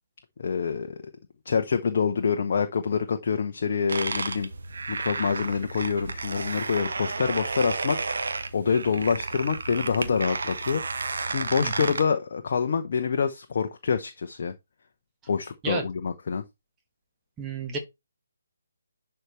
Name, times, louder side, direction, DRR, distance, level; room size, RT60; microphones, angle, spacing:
voice 1, 0.4-1.0 1.5-4.5 4.9-10.8 11.3-14.5 15.3-16.4, left 6 dB, 45° left, 0.8 m, -26 dB
sound 1, 3.9-12.0, right 3 dB, 55° right, 1.1 m, -32 dB
voice 2, 11.6-11.9 15.6-15.8 17.4-17.8, right 4 dB, 15° right, 1.5 m, -31 dB
11.0 x 4.5 x 3.2 m
figure-of-eight pair, 145°, 0 cm